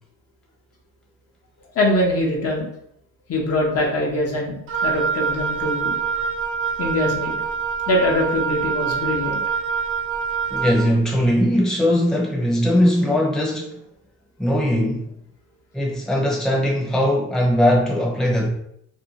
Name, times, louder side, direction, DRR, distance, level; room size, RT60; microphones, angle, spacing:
voice 1, 1.7-2.7 3.3-6.0 6.8-7.3 7.9-9.4, left 1 dB, 55° left, 0.8 m, -22 dB
Wind instrument woodwind instrument, 4.7-10.9, right 6 dB, 45° right, 0.4 m, -25 dB
voice 2, 10.5-13.8 14.4-15.1 15.7-18.5, equal, ahead, 0.6 m, -20 dB
2.7 x 2.2 x 2.8 m
cardioid pair, 90°, 30 cm